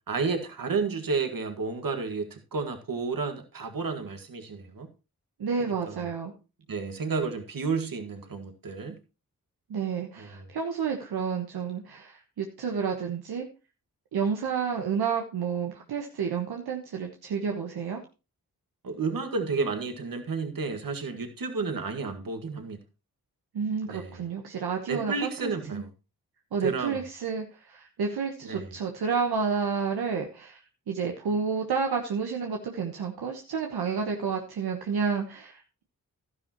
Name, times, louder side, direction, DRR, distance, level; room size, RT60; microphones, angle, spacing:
voice 1, 0.1-4.9 5.6-6.1 6.7-9.0 10.2-10.5 18.8-22.8 23.8-24.2 24.9-25.9 26.6-27.0 28.4-28.8, right 4 dB, 65° right, 6 dB, 1.9 m, -31 dB
voice 2, 5.4-6.3 9.7-13.4 14.1-18.0 23.5-25.8 26.5-30.6 30.9-35.8, right 6 dB, 85° right, 2 dB, 1.2 m, -30 dB
12.0 x 10.5 x 3.0 m, 0.31 s
cardioid pair, 40°, 37 cm